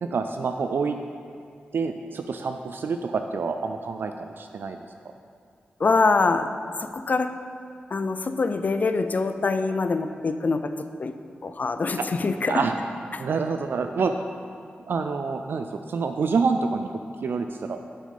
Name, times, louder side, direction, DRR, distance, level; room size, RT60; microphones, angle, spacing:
voice 1, 0.0-1.0 1.7-4.8 12.0-12.1 12.5-12.7 13.2-14.1 14.9-16.9 17.2-17.8, right 5 dB, 70° right, 6 dB, 0.4 m, -27 dB
voice 2, 5.8-6.5 6.8-7.3 7.9-10.7 11.0-11.1 11.4-12.6, left 4 dB, 50° left, 9 dB, 0.5 m, -24 dB
7.7 x 6.4 x 5.3 m, 2.3 s
cardioid pair, 65°, 4 cm